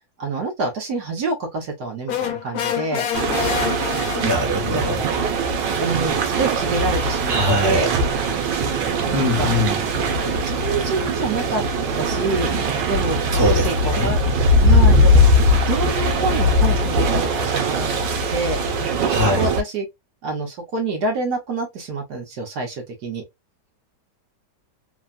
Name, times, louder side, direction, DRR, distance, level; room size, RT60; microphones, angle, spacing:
voice 1, 0.2-3.1 4.7-5.1 5.8-7.9 9.0-9.5 10.2-11.6 12.0-14.3 14.6-18.6 19.0-19.9 20.2-23.2, right 3 dB, 70° right, 1.4 m, -27 dB
sound 1, 2.1-4.7, left 9 dB, 70° left, 1.1 m, -27 dB
sound 2, 3.1-19.6, equal, 85° right, 1.5 m, -20 dB
voice 2, 4.2-5.0 7.3-7.9 9.1-9.8 13.3-14.1 19.1-19.5, left 1 dB, 15° right, 1.1 m, -22 dB
3.4 x 2.2 x 2.4 m
omnidirectional pair, 1.9 m